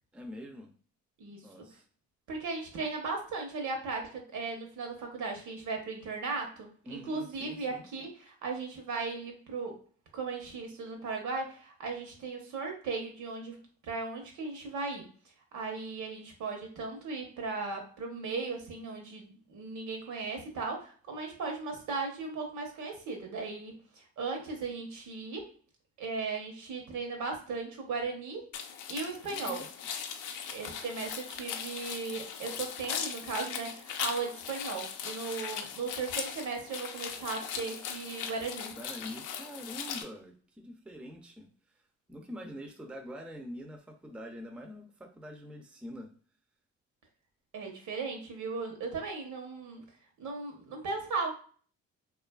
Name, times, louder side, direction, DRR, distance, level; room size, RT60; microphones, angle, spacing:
voice 1, 0.1-0.7 1.4-1.9 6.8-7.9 29.2-29.8 38.8-41.8 42.1-46.1, equal, 5° right, 3 dB, 0.4 m, -45 dB
voice 2, 1.2-1.7 2.3-9.8 10.1-13.6 13.8-15.1 15.5-25.5 26.0-29.6 30.5-38.7 47.5-49.8 50.2-51.3, right 4 dB, 75° right, 3 dB, 0.9 m, -37 dB
sound 1, 28.5-40.0, left 7 dB, 85° left, 0.5 m, -39 dB
2.6 x 2.4 x 2.2 m, 0.43 s
cardioid pair, 90°, 30 cm